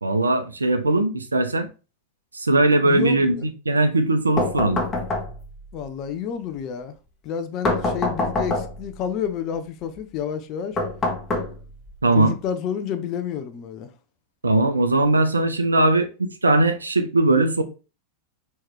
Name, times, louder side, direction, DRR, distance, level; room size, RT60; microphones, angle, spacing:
voice 1, 0.0-1.7 2.3-4.8 12.0-12.4 14.4-17.6, right 2 dB, 80° right, 0.6 m, -20 dB
voice 2, 2.8-3.5 5.7-6.9 7.2-10.8 12.1-13.9, left 8 dB, 40° left, 0.6 m, -29 dB
sound 1, 4.4-5.6 7.6-8.9 10.8-11.9, left 2 dB, 20° left, 1.2 m, -25 dB
4.7 x 3.1 x 3.6 m
figure-of-eight pair, 90°, 0 cm